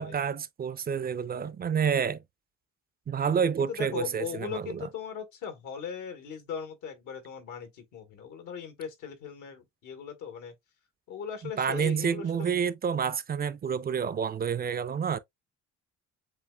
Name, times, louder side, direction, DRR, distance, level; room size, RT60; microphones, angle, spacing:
voice 1, 0.0-2.2 3.1-4.9 11.4-15.2, right 7 dB, 30° right, 0.4 m, -29 dB
voice 2, 3.7-10.5 11.1-12.6, left 7 dB, 85° left, 1.6 m, -39 dB
7.3 x 2.5 x 2.2 m
cardioid pair, 90°, 30 cm